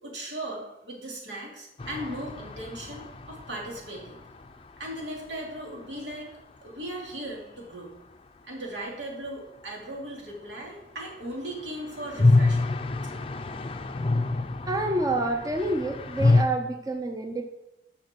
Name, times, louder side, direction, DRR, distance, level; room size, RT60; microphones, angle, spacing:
voice 1, 0.0-4.2 4.8-6.3 6.6-8.0 8.5-12.8, right 1 dB, 85° right, -2 dB, 2.9 m, -38 dB
sound 1, 1.8-5.6 5.8-5.9 6.1-6.2 11.2-16.4, left 2 dB, 30° left, 0.5 m, -27 dB
voice 2, 14.7-17.4, right 2 dB, 20° right, 5 dB, 0.6 m, -28 dB
13.0 x 6.0 x 4.6 m, 0.93 s
head